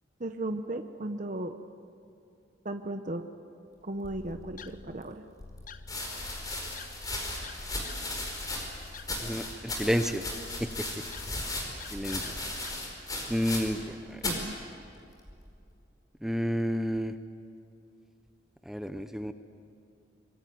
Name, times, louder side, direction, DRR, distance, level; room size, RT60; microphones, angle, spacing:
voice 1, 0.2-1.6 2.6-3.2 3.8-5.2 14.2-14.6, right 1 dB, 40° right, 7 dB, 0.9 m, -35 dB
sound 1, 4.0-12.8, left 3 dB, 45° left, 0.9 m, -47 dB
sound 2, 4.8-4.9 5.8-13.9 14.2-14.5 15.3-15.7, left 2 dB, 20° left, 4.8 m, -36 dB
voice 2, 9.2-10.2 10.6-10.7 11.9-12.3 13.3-14.2 16.2-17.1 18.7-19.3, equal, ahead, 8 dB, 0.8 m, -30 dB
25.5 x 22.5 x 9.4 m, 2.5 s
head